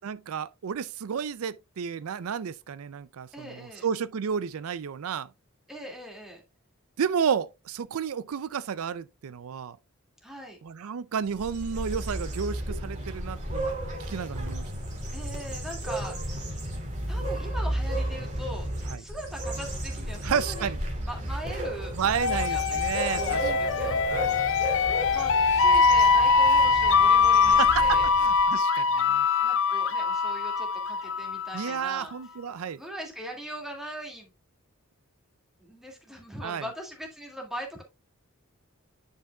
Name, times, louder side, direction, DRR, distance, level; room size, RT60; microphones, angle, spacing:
voice 1, 0.0-5.3 7.0-9.8 10.6-13.7 14.1-14.7 20.2-20.8 22.0-24.4 27.5-29.3 31.5-32.8 36.4-36.6, right 7 dB, 80° right, 0.4 m, -32 dB
voice 2, 3.3-3.9 5.7-6.4 10.2-10.6 15.1-16.6 17.1-18.7 19.0-20.7 21.0-22.8 23.2-24.0 24.8-28.1 29.4-32.1 32.8-34.3 35.6-37.8, equal, ahead, 2.1 m, -41 dB
sound 1, 11.2-28.5, right 1 dB, 35° right, 2.6 m, -33 dB
sound 2, 22.1-31.8, left 5 dB, 60° left, 0.7 m, -23 dB
10.0 x 5.4 x 2.3 m
head